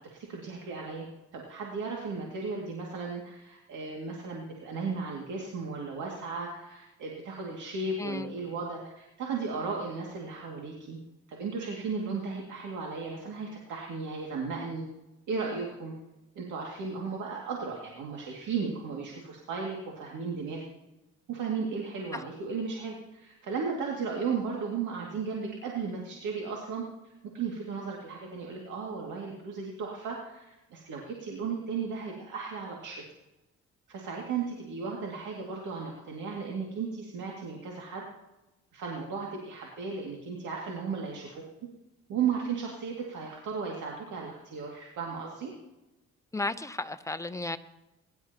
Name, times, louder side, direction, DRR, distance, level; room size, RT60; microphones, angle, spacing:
voice 1, 0.1-1.1 1.3-11.0 11.3-14.8 15.3-15.9 16.4-20.6 21.3-26.8 27.3-33.0 33.9-38.0 38.7-41.4 42.1-45.5, right 5 dB, 80° right, -2 dB, 2.4 m, -35 dB
voice 2, 8.0-8.3 46.3-47.6, left 2 dB, 10° left, 10 dB, 0.8 m, -33 dB
22.0 x 11.5 x 3.0 m, 1.0 s
cardioid pair, 90°, 30 cm